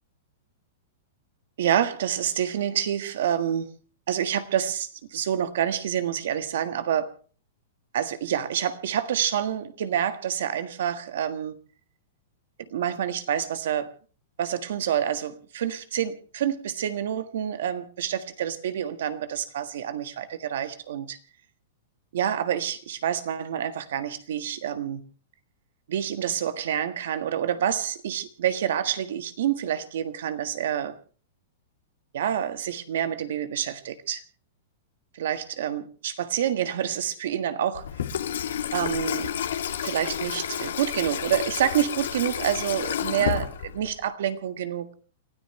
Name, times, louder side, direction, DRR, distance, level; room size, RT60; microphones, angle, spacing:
voice 1, 1.6-3.7 4.1-7.1 7.9-11.6 12.7-13.9 14.4-21.2 22.1-25.0 25.9-31.0 32.1-34.2 35.1-37.9 38.7-39.3 39.8-44.9, right 10 dB, 70° right, 1.6 m, -28 dB
Water tap faucet / Sink (filling or washing), 37.7-44.0, left 9 dB, 85° left, 2.5 m, -30 dB
29.5 x 13.0 x 3.3 m
hypercardioid pair, 150°, 0 cm